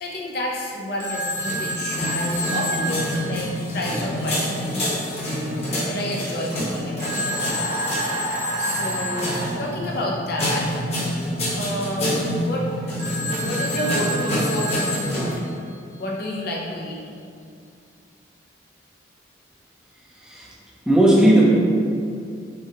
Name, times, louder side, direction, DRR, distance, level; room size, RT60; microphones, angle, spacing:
voice 1, 0.0-4.9 5.8-7.5 8.6-10.8 11.6-12.7 13.4-15.4 15.9-17.0, left 1 dB, 55° left, -2 dB, 0.6 m, -30 dB
Telephone, 1.0-4.1 7.0-9.6 13.0-15.7, right 1 dB, 40° right, 1.0 m, -29 dB
sound 1, 1.2-15.3, equal, 35° left, 1.1 m, -27 dB
sound 2, 7.3-9.5, equal, 90° right, 0.9 m, -30 dB
voice 2, 20.9-21.4, right 1 dB, 5° right, -5 dB, 0.7 m, -15 dB
5.8 x 2.4 x 2.9 m, 2.3 s
head